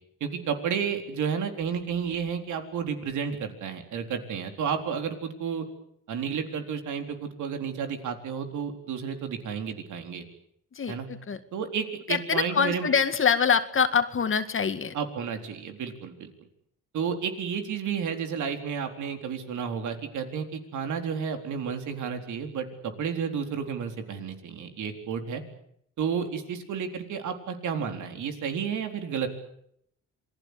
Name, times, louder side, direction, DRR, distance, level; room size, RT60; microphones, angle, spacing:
voice 1, 0.2-5.7 6.1-10.2 10.9-11.1 11.5-12.9 14.9-16.3 16.9-25.4 26.0-29.3, right 7 dB, 75° right, 6 dB, 4.1 m, -31 dB
voice 2, 10.8-11.4 12.1-14.9, left 6 dB, 45° left, 9 dB, 2.1 m, -25 dB
27.5 x 21.5 x 8.3 m, 0.72 s
cardioid pair, 90°, 30 cm